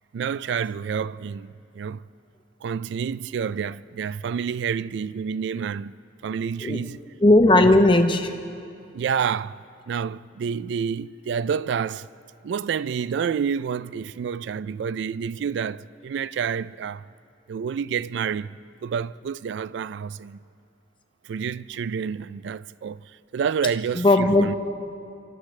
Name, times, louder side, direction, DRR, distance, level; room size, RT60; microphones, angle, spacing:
voice 1, 0.1-2.0 2.6-5.9 6.2-7.0 7.6-7.8 8.9-9.6 9.9-12.1 12.4-17.0 17.5-18.5 18.8-20.4 21.3-23.0 23.3-24.5, right 7 dB, 65° right, 0.3 m, -28 dB
voice 2, 7.2-8.3 23.9-24.5, left 2 dB, 25° left, 0.8 m, -17 dB
29.5 x 13.0 x 3.2 m
head